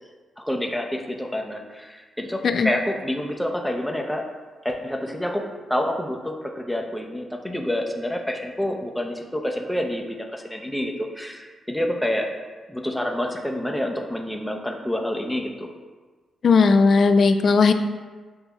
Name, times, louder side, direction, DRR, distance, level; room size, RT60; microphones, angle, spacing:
voice 1, 0.4-4.3 4.6-5.4 5.7-10.0 10.3-12.3 12.7-15.7, left 1 dB, 5° left, 2 dB, 0.6 m, -28 dB
voice 2, 16.4-17.7, left 4 dB, 60° left, 9 dB, 0.3 m, -17 dB
7.8 x 2.7 x 2.3 m, 1.4 s
cardioid pair, 65°, 0 cm